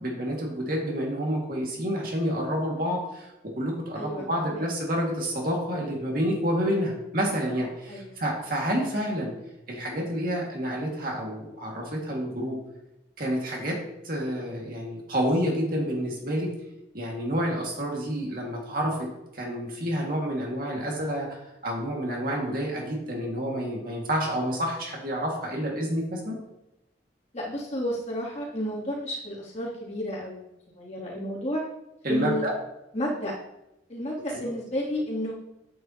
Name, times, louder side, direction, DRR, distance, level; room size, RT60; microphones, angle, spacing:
voice 1, 0.0-9.3 9.7-12.6 13.2-13.8 14.0-16.5 16.9-26.4 32.0-32.5, equal, 50° right, -1 dB, 2.1 m, -29 dB
voice 2, 3.9-4.7 7.9-8.3 27.3-30.5 30.8-31.6 32.1-32.4 32.9-33.3 33.9-35.4, equal, 35° left, -6 dB, 2.8 m, -31 dB
9.8 x 9.0 x 2.9 m, 0.88 s
head